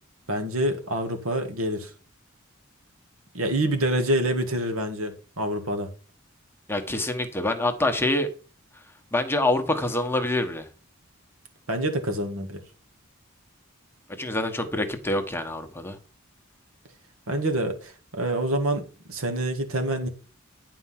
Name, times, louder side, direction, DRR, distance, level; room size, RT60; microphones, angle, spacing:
voice 1, 0.3-1.9 3.3-5.9 11.7-12.6 17.3-18.8 19.1-20.1, right 1 dB, 85° right, 6 dB, 1.7 m, -26 dB
voice 2, 6.7-8.3 9.1-10.7 14.2-16.0, left 2 dB, 10° left, 6 dB, 1.1 m, -26 dB
9.7 x 4.8 x 5.8 m, 0.36 s
head